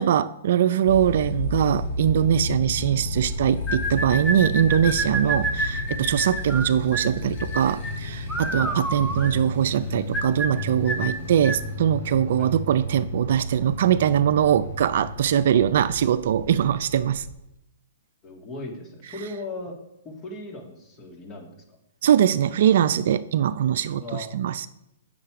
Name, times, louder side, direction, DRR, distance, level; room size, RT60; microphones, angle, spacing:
voice 1, 0.0-17.2 22.0-24.7, right 9 dB, 60° right, 14 dB, 0.4 m, -22 dB
Motorcycle, 0.8-17.3, left 1 dB, 70° left, 3.4 m, -32 dB
sound 1, 3.7-11.7, right 1 dB, 5° left, 0.9 m, -29 dB
voice 2, 18.2-19.8 20.0-21.8 24.0-24.4, left 2 dB, 25° left, 2 dB, 2.0 m, -38 dB
8.5 x 6.5 x 4.8 m, 0.84 s
hypercardioid pair, 130°, 0 cm